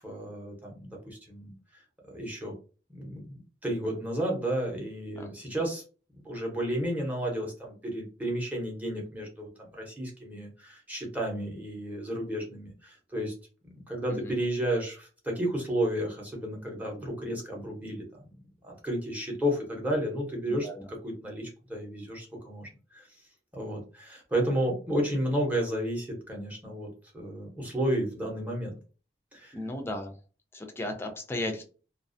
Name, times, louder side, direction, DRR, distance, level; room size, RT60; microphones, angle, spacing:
voice 1, 0.0-1.5 2.0-2.5 2.9-5.8 6.2-13.3 13.6-18.3 18.6-23.1 23.5-26.9 27.1-28.7 29.3-29.6, right 1 dB, 10° right, -1 dB, 0.7 m, -32 dB
voice 2, 20.5-20.9 29.5-30.2 30.5-31.6, left 1 dB, 15° left, 5 dB, 0.4 m, -35 dB
2.4 x 2.3 x 2.5 m, 0.36 s
head